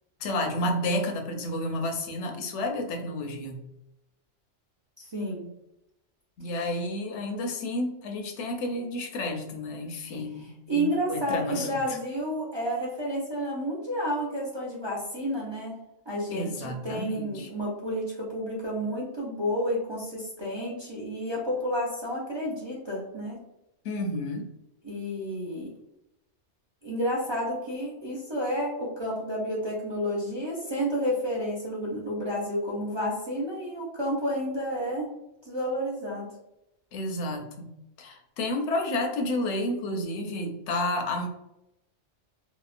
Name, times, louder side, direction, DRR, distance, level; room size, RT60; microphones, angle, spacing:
voice 1, 0.2-3.6 6.4-12.0 16.3-17.5 23.8-24.5 36.9-37.7 38.0-41.3, left 1 dB, 75° left, 3 dB, 0.9 m, -31 dB
voice 2, 5.0-5.4 10.7-15.7 16.1-23.4 24.8-25.7 26.8-35.1 35.5-36.3, equal, 40° right, -6 dB, 0.4 m, -30 dB
2.8 x 2.0 x 2.4 m, 0.87 s
omnidirectional pair, 1.2 m